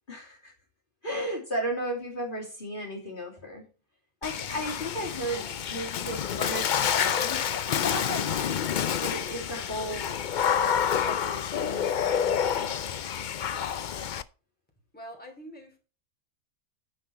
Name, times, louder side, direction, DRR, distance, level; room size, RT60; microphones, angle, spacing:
voice 1, 0.1-0.5 1.0-3.7 4.2-5.4 5.7-8.6 9.0-10.2 10.5-12.9, right 1 dB, 35° left, -3 dB, 2.8 m, -35 dB
Water / Splash splatter, 4.2-14.2, left 8 dB, 75° left, 0.4 m, -28 dB
voice 2, 14.9-15.8, equal, 5° left, 2 dB, 3.0 m, -45 dB
9.9 x 6.9 x 4.5 m, 0.34 s
omnidirectional pair, 1.5 m